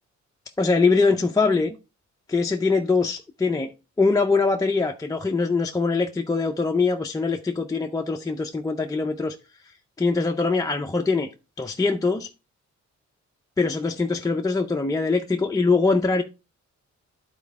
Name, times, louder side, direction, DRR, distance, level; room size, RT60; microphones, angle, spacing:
voice 1, 0.6-1.7 2.3-3.7 4.0-9.3 10.0-11.3 11.6-12.3 13.6-16.2, left 4 dB, 10° left, 0.4 m, -22 dB
11.5 x 4.2 x 3.5 m
wide cardioid pair, 165°, 29 cm